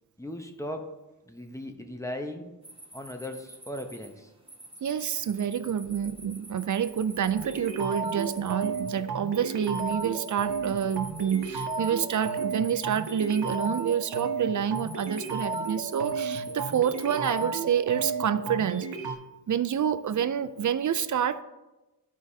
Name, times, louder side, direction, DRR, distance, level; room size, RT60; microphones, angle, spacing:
voice 1, 0.2-0.9 1.2-2.5 2.9-4.3, left 1 dB, 5° left, 4 dB, 0.9 m, -37 dB
sound 1, 2.6-17.4, right 1 dB, 15° right, 1.2 m, -48 dB
voice 2, 4.8-18.9 19.5-21.4, right 8 dB, 45° right, 12 dB, 0.5 m, -28 dB
sound 2, 7.3-19.1, right 4 dB, 80° right, 1.0 m, -33 dB
13.5 x 4.7 x 2.8 m, 1.1 s
wide cardioid pair, 90°, 41 cm